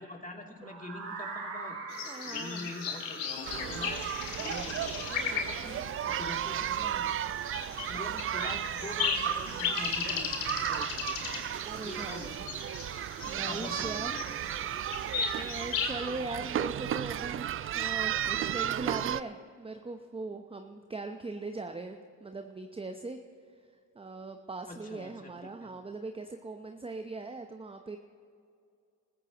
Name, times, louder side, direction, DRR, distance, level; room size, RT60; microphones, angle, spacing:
voice 1, 0.0-1.8 2.3-4.0 4.4-7.1 7.8-11.3 11.7-12.3 13.3-14.3 24.7-25.5, left 2 dB, 15° left, 1 dB, 2.9 m, -44 dB
sound 1, 0.6-6.5, right 4 dB, 80° right, 3.6 m, -44 dB
sound 2, 1.9-15.9, left 7 dB, 65° left, 2.1 m, -37 dB
voice 2, 2.1-2.7 11.6-12.5 13.3-14.1 15.3-17.5 17.7-23.2 23.9-28.0, right 3 dB, 10° right, 6 dB, 0.9 m, -40 dB
sound 3, 3.4-19.2, right 10 dB, 30° right, 0.4 m, -34 dB
28.0 x 14.5 x 3.0 m, 2.4 s
hypercardioid pair, 60°, 48 cm